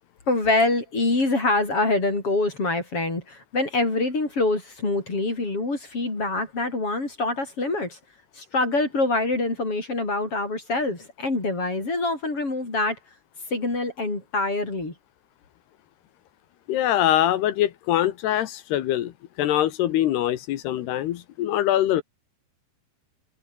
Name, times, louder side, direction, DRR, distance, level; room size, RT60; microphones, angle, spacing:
voice 1, 0.3-8.0 8.3-13.0 13.5-14.9, left 2 dB, 30° left, 6.3 m, -25 dB
voice 2, 16.7-19.1 19.4-22.0, left 12 dB, 70° left, 3.0 m, -23 dB
omnidirectional pair, 5.4 m